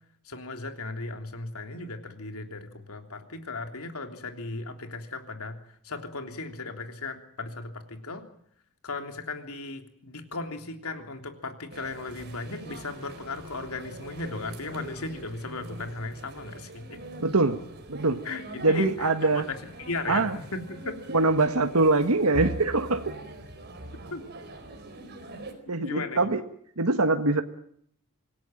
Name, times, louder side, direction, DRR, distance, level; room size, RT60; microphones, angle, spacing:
voice 1, 0.2-5.6 5.8-8.3 8.8-17.0 18.2-19.1 19.3-21.0 24.1-24.2 25.8-26.2, left 3 dB, 75° left, 6 dB, 3.3 m, -36 dB
sound 1, 11.7-25.5, right 1 dB, 50° right, 4.4 m, -42 dB
voice 2, 17.2-17.6 17.9-18.2 18.6-19.5 20.1-20.4 21.1-23.1 25.7-26.4 26.8-27.4, right 3 dB, 75° right, 7 dB, 1.5 m, -23 dB
26.0 x 18.0 x 9.0 m, 0.67 s
head